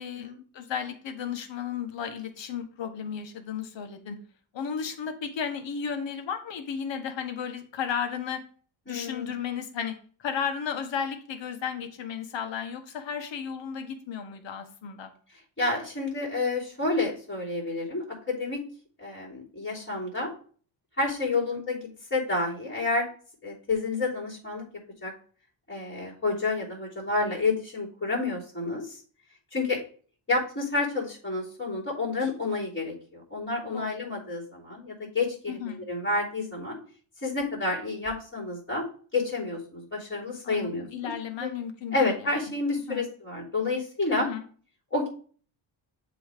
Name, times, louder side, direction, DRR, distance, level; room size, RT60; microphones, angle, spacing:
voice 1, 0.0-4.2 4.5-8.4 8.9-15.1 33.7-33.9 35.5-35.8 40.4-42.3 42.9-43.1 44.1-44.4, left 7 dB, 65° left, 7 dB, 1.3 m, -34 dB
voice 2, 8.9-9.3 15.6-18.6 19.0-20.3 21.0-23.1 23.4-24.7 25.0-25.1 25.7-29.0 29.5-29.8 30.3-36.8 37.2-38.8 39.1-41.1 41.4-41.5 41.9-44.3 44.9-45.1, left 3 dB, 25° left, -8 dB, 3.4 m, -29 dB
7.7 x 3.2 x 5.0 m, 0.43 s
cardioid pair, 75°, 48 cm